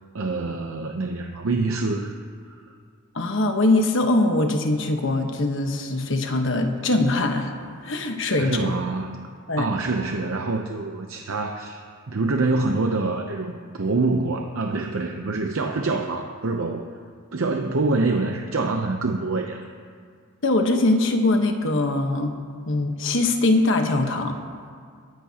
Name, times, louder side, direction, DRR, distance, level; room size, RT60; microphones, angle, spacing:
voice 1, 0.1-2.2 8.4-9.3 9.6-11.8 12.1-16.9 17.3-19.6, right 3 dB, 70° right, 3 dB, 0.7 m, -25 dB
voice 2, 3.1-7.5 7.8-8.7 9.5-9.7 20.4-22.4 22.7-24.4, left 2 dB, 60° left, 4 dB, 1.2 m, -22 dB
23.0 x 10.5 x 2.9 m, 2.1 s
head